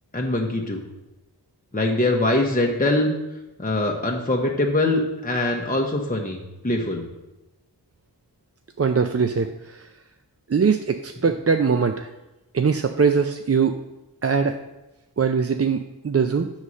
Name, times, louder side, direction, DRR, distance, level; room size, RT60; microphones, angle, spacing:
voice 1, 0.1-0.8 1.7-3.1 3.6-7.0, left 2 dB, 20° left, 0 dB, 1.0 m, -23 dB
voice 2, 8.8-9.9 10.5-12.1 12.5-13.8 14.2-14.6 15.2-16.5, right 5 dB, 35° right, 7 dB, 0.5 m, -21 dB
8.1 x 4.1 x 6.2 m, 1.0 s
wide cardioid pair, 40°, 41 cm